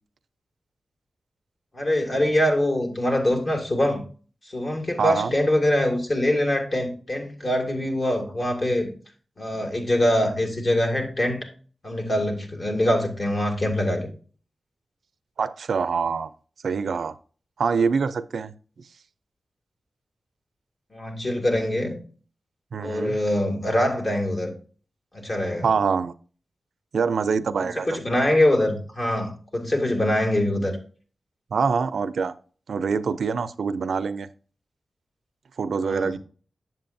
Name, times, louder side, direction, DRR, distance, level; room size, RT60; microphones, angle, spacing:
voice 1, 1.7-4.0 4.5-8.9 9.4-11.4 11.8-14.1 20.9-22.0 22.8-24.5 25.1-25.7 27.6-30.8 35.8-36.1, left 1 dB, 40° left, 2.3 m, -24 dB
voice 2, 5.0-5.3 15.4-16.3 16.6-17.1 17.6-18.5 22.7-23.2 25.6-26.1 26.9-28.0 31.5-32.3 32.7-34.3 35.6-36.2, right 5 dB, 80° right, 0.4 m, -25 dB
7.6 x 7.5 x 2.6 m
wide cardioid pair, 90°, 0 cm